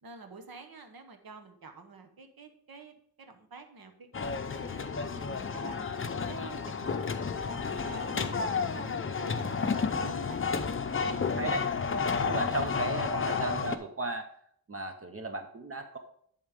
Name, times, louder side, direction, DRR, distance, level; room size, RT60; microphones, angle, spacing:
voice 1, 0.0-5.8 6.2-10.5, right 3 dB, 70° right, 6 dB, 1.2 m, -48 dB
sound 1, 4.1-13.8, left 5 dB, 35° left, 0.6 m, -31 dB
voice 2, 11.1-11.8 12.2-14.3 14.7-16.0, right 3 dB, 35° right, 6 dB, 0.7 m, -36 dB
10.5 x 4.4 x 5.1 m, 0.66 s
wide cardioid pair, 115°, 37 cm